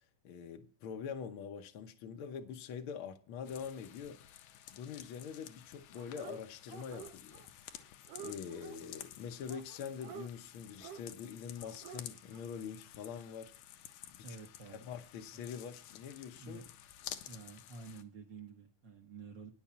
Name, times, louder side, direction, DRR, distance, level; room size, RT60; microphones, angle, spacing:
voice 1, 0.2-7.5 7.7-7.9 8.2-13.5 14.1-14.2 14.7-16.6, left 7 dB, 65° left, 1.4 m, -44 dB
sound 1, 3.4-18.0, left 12 dB, 85° left, 2.3 m, -52 dB
Dog, 5.9-6.4 6.7-7.5 7.7-8.8 9.5-10.3 10.8-11.0 11.6-12.0 12.3-12.4, right 8 dB, 80° right, 1.4 m, -49 dB
voice 2, 14.2-14.8 15.3-15.4 16.4-16.6 17.2-19.5, right 4 dB, 55° right, 1.4 m, -50 dB
9.8 x 7.1 x 7.2 m
omnidirectional pair, 3.5 m